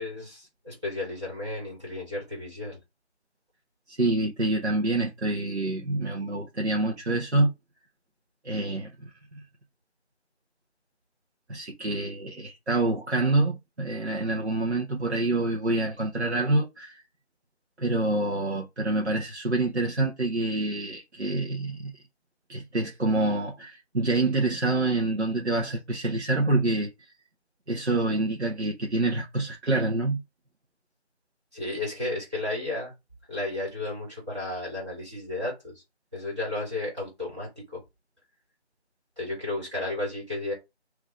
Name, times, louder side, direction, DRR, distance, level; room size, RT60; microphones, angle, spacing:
voice 1, 0.0-2.8 31.5-32.9 33.3-35.7 36.1-37.8 39.2-40.5, left 2 dB, 25° right, 2.6 m, -33 dB
voice 2, 3.9-7.5 8.4-9.4 11.5-17.0 17.8-21.9 22.5-26.9 27.7-30.2, right 2 dB, 70° right, 1.2 m, -27 dB
3.9 x 3.0 x 3.7 m
figure-of-eight pair, 175°, 34 cm